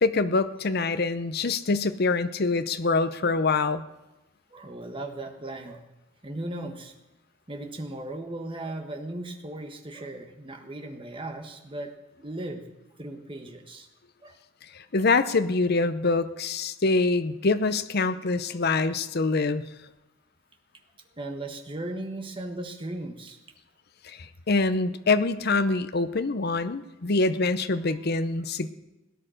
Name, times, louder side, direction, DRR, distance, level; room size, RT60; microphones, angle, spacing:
voice 1, 0.0-3.8 14.7-19.6 24.0-28.7, left 3 dB, 50° left, 12 dB, 0.7 m, -25 dB
voice 2, 4.5-5.9 6.2-6.9 7.5-11.9 12.2-12.6 13.0-13.9 14.2-14.4 21.1-23.4 27.9-28.0, right 1 dB, 25° right, 5 dB, 1.4 m, -37 dB
18.0 x 10.0 x 6.4 m, 1.0 s
head